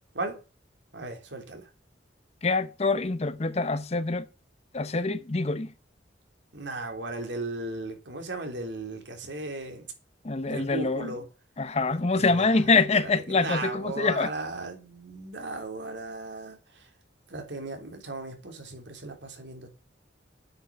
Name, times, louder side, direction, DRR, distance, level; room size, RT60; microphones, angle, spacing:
voice 1, 0.9-1.7 6.5-9.9 10.5-11.2 11.9-12.7 13.0-16.9 17.3-19.7, right 2 dB, 80° right, 3.2 m, -36 dB
voice 2, 2.4-4.3 4.7-5.7 10.2-11.1 11.6-14.3, left 3 dB, 35° left, 0.7 m, -25 dB
9.2 x 6.5 x 8.4 m
head